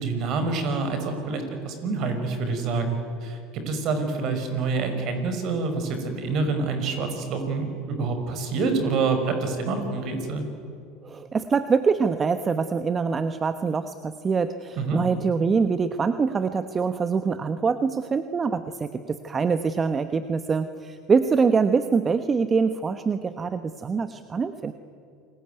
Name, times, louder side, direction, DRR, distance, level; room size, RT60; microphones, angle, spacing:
voice 1, 0.0-10.4 14.8-15.0, right 4 dB, 55° right, 7 dB, 5.8 m, -27 dB
voice 2, 11.0-24.7, right 5 dB, 25° right, 10 dB, 1.2 m, -24 dB
28.5 x 21.5 x 9.4 m, 2.4 s
hypercardioid pair, 80°, 0 cm